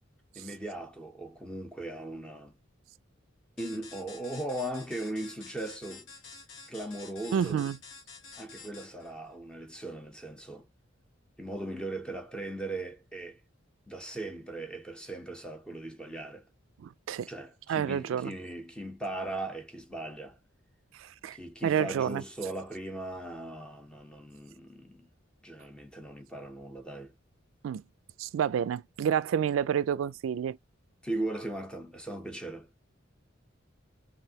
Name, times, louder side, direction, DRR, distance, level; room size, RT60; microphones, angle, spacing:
voice 1, 0.3-2.6 3.6-6.1 6.7-7.7 8.3-10.7 11.4-13.4 13.9-16.4 17.3-20.4 21.3-25.1 25.4-27.1 31.0-32.7, right 1 dB, 5° left, 0.7 m, -38 dB
sound 1, 3.6-9.1, left 4 dB, 85° left, 1.3 m, -49 dB
voice 2, 7.3-7.8 16.8-17.3 17.7-18.3 20.9-22.2 27.6-27.8 28.2-30.6, right 8 dB, 85° right, 0.3 m, -29 dB
3.2 x 2.6 x 2.8 m
head